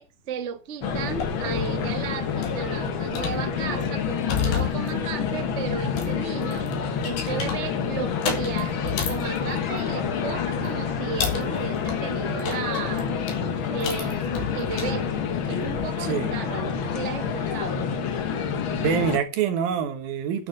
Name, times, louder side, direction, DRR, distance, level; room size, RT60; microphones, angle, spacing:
voice 1, 0.0-6.7 7.0-13.1 13.7-15.1 15.5-17.8, right 6 dB, 55° right, 0.7 m, -34 dB
sound 1, 0.8-19.2, left 6 dB, 65° left, 1.3 m, -28 dB
sound 2, 0.9-15.9, left 7 dB, 85° left, 4.2 m, -35 dB
voice 2, 16.0-16.3 18.7-20.5, right 7 dB, 85° right, 3.2 m, -26 dB
11.0 x 6.3 x 6.4 m
omnidirectional pair, 4.1 m